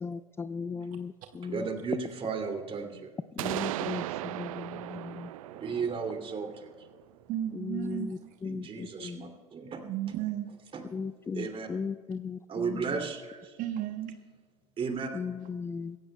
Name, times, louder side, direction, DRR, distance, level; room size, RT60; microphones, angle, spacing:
voice 1, 0.0-1.7 3.4-5.3 7.5-9.3 10.9-12.8 15.1-16.0, left 5 dB, 15° left, 0.3 m, -37 dB
voice 2, 1.4-3.2 5.3-6.9 8.4-9.8 10.7-10.8 11.3-11.7 12.5-13.6 14.8-15.1, right 5 dB, 30° right, 2.7 m, -35 dB
sound 1, 3.4-7.2, right 15 dB, 75° right, 0.5 m, -37 dB
voice 3, 7.3-8.4 9.8-10.5 13.6-14.1, right 11 dB, 50° right, 1.0 m, -34 dB
25.0 x 16.0 x 2.3 m
hypercardioid pair, 85°, 18 cm